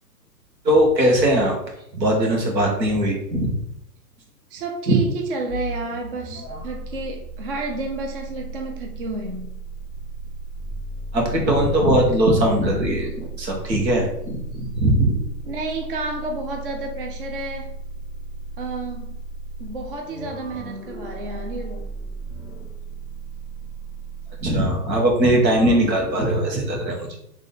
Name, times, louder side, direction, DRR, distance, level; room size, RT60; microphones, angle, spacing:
voice 1, 0.6-1.5 1.9-3.5 4.9-5.0 11.1-15.2 24.4-27.2, right 1 dB, 85° right, 0 dB, 1.7 m, -20 dB
voice 2, 4.5-9.5 15.4-17.7 18.6-19.2 19.6-21.9, right 3 dB, 35° right, 3 dB, 0.4 m, -31 dB
sound 1, 5.5-24.7, right 3 dB, 10° right, 0.9 m, -35 dB
4.1 x 3.2 x 3.6 m, 0.78 s
hypercardioid pair, 150°, 50 cm